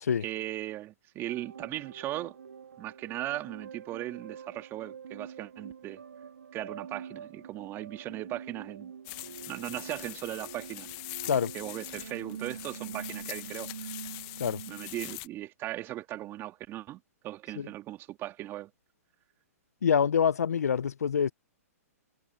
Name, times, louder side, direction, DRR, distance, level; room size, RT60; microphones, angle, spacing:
voice 1, 0.2-2.4 2.8-6.0 6.5-8.9 9.5-10.9 11.5-13.9 14.7-18.7, right 15 dB, 30° right, 2.3 m, -38 dB
sound 1, 1.2-15.2, right 7 dB, 80° right, 2.9 m, -45 dB
sound 2, 9.0-15.3, left 27 dB, 35° left, 1.2 m, -43 dB
voice 2, 19.8-21.3, left 7 dB, 80° left, 0.8 m, -26 dB
hypercardioid pair, 125°, 8 cm